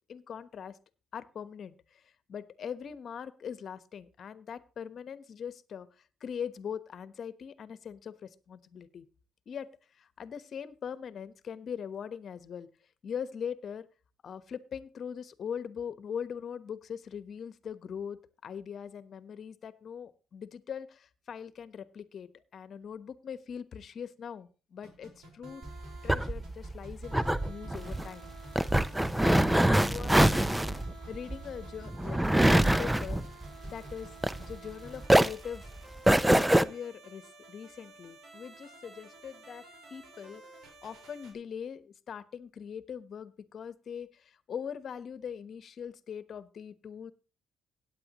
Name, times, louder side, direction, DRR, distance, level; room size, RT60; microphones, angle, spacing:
voice 1, 0.1-0.8 1.1-9.1 9.5-12.7 13.0-13.9 14.2-25.6 26.0-28.3 29.2-30.8 31.1-33.2 33.7-34.1 34.5-35.7 36.3-40.4 40.8-47.1, left 7 dB, 55° left, 14 dB, 1.1 m, -41 dB
sound 1, 24.8-41.3, right 2 dB, 85° right, 4.7 m, -51 dB
sound 2, 25.6-34.7 35.0-36.6, right 1 dB, 10° right, 0.6 m, -25 dB
17.0 x 9.4 x 3.0 m, 0.34 s
cardioid pair, 90°, 0 cm